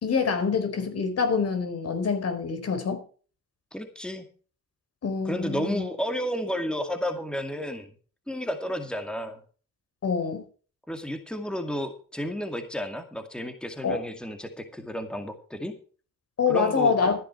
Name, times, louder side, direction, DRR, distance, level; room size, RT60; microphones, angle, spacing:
voice 1, 0.0-3.0 5.0-5.8 10.0-10.4 13.8-14.0 16.4-17.2, left 5 dB, 55° left, 4.4 m, -25 dB
voice 2, 3.7-4.3 5.2-7.9 8.3-9.4 10.9-15.8 16.5-16.9, equal, 5° left, 2.3 m, -32 dB
14.0 x 10.0 x 4.7 m
cardioid pair, 90°, 30 cm